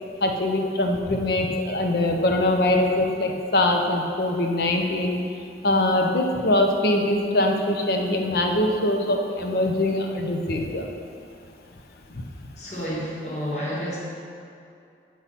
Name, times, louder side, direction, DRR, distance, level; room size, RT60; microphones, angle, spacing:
voice 1, 0.2-5.2 5.6-10.9 12.1-12.2, left 1 dB, 60° left, 2 dB, 0.7 m, -23 dB
voice 2, 12.6-14.0, equal, 40° left, -6 dB, 1.8 m, -30 dB
8.4 x 4.7 x 5.6 m, 2.5 s
head